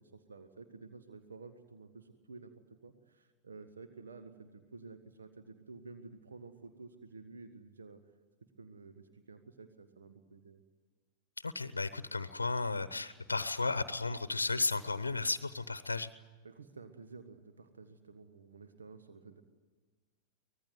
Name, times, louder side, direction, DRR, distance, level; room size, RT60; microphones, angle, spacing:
voice 1, 0.0-8.0 8.6-10.6 16.4-19.4, right 4 dB, 70° right, 8 dB, 1.4 m, -52 dB
voice 2, 11.4-16.1, left 3 dB, 80° left, 14 dB, 0.8 m, -34 dB
24.5 x 19.0 x 9.5 m, 1.4 s
figure-of-eight pair, 90°, 0 cm